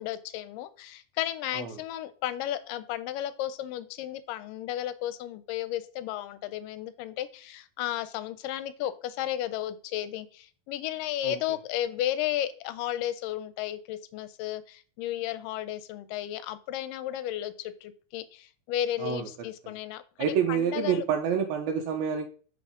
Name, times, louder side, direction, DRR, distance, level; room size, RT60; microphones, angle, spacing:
voice 1, 0.0-21.1, left 12 dB, 80° left, 13 dB, 2.1 m, -34 dB
voice 2, 20.2-22.3, right 7 dB, 85° right, 2 dB, 2.5 m, -28 dB
6.1 x 6.0 x 3.7 m, 0.39 s
omnidirectional pair, 4.2 m